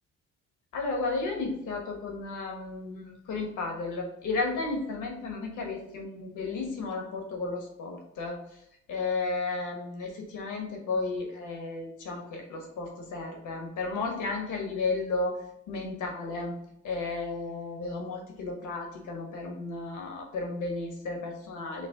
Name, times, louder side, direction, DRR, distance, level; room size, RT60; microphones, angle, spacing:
voice 1, 0.7-8.6 8.9-16.5 16.8-21.9, left 3 dB, 80° left, 1 dB, 1.2 m, -33 dB
6.0 x 2.1 x 3.8 m, 0.77 s
cardioid pair, 90°, 30 cm